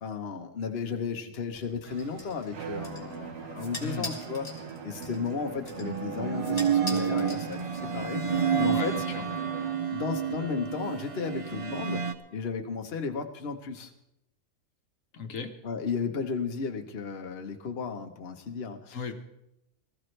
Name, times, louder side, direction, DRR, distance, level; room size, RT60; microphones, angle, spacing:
voice 1, 0.0-4.5 4.8-8.2 8.6-9.0 9.9-13.9 15.6-19.0, left 5 dB, 50° left, 4 dB, 1.2 m, -34 dB
sound 1, 1.5-8.0, left 1 dB, 25° left, 2.6 m, -44 dB
Bowed string instrument, 2.5-9.9, right 5 dB, 70° right, 1.4 m, -41 dB
sound 2, 3.8-4.7 5.6-12.1, right 7 dB, 35° right, 0.5 m, -30 dB
voice 2, 8.7-9.2 15.1-15.5 18.9-19.1, left 6 dB, 70° left, 6 dB, 1.4 m, -36 dB
19.5 x 14.5 x 3.3 m, 0.83 s
omnidirectional pair, 1.4 m